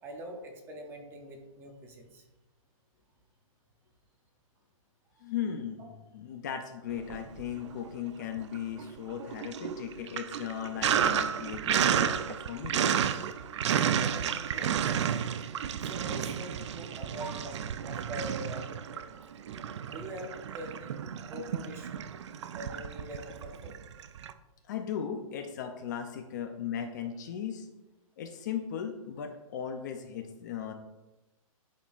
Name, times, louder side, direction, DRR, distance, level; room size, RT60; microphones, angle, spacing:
voice 1, 0.0-2.2 5.1-5.2 5.8-5.9 9.1-9.4 14.0-14.9 15.7-19.2 19.9-21.0 21.2-21.9 22.5-23.8, right 1 dB, 15° right, 3 dB, 0.6 m, -44 dB
voice 2, 5.2-12.8 24.6-27.7 28.2-30.7, left 8 dB, 30° left, 6 dB, 0.5 m, -37 dB
Sink (filling or washing), 7.0-7.9 8.2-24.3, right 8 dB, 55° right, 0.4 m, -32 dB
10.0 x 4.3 x 2.4 m, 1.0 s
hypercardioid pair, 155°, 18 cm